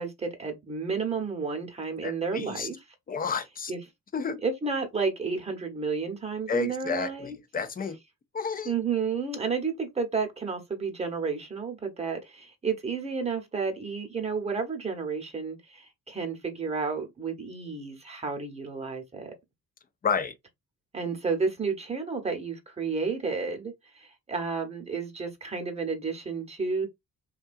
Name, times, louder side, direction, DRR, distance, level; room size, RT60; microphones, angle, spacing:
voice 1, 0.0-2.8 3.7-3.8 4.4-7.4 8.6-19.3 20.9-26.9, right 5 dB, 20° right, 0.9 m, -31 dB
voice 2, 2.0-2.7 3.1-3.7 4.1-4.4 6.5-8.0 8.3-8.7 20.0-20.3, left 5 dB, 30° left, 0.5 m, -30 dB
2.7 x 2.3 x 2.5 m
cardioid pair, 90°, 30 cm